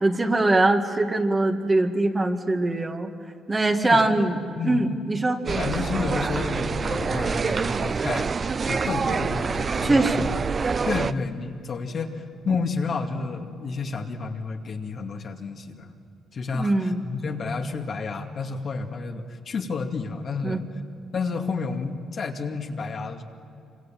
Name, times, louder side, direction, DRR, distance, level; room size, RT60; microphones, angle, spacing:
voice 1, 0.0-3.1 3.5-4.4 4.6-5.4 9.8-10.3 16.5-17.0 20.4-20.6, right 2 dB, 25° right, 4 dB, 2.0 m, -22 dB
voice 2, 3.8-4.9 5.4-8.3 8.6-10.3 10.8-15.9 16.3-20.6 21.1-23.2, left 4 dB, 50° left, 2 dB, 2.4 m, -30 dB
sound 1, 5.5-11.1, right 5 dB, 40° right, 0.7 m, -26 dB
26.5 x 25.0 x 7.7 m, 2.6 s
cardioid pair, 90°, 0 cm